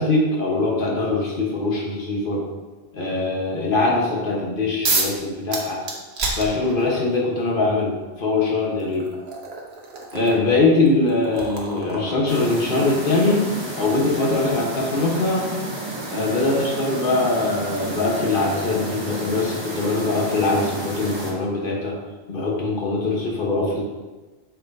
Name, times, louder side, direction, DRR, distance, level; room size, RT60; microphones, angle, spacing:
voice 1, 0.0-2.5 2.9-5.8 6.3-9.1 10.1-13.4 13.7-15.5 16.1-22.0 22.3-23.8, left 3 dB, 50° left, -2 dB, 1.4 m, -22 dB
sound 1, 4.8-5.2 5.5-7.1 8.2-8.3 8.8-15.5, right 3 dB, 65° right, 1.2 m, -31 dB
sound 2, 12.3-21.3, right 1 dB, 25° right, 1.0 m, -31 dB
7.9 x 5.7 x 2.7 m, 1.3 s
omnidirectional pair, 1.2 m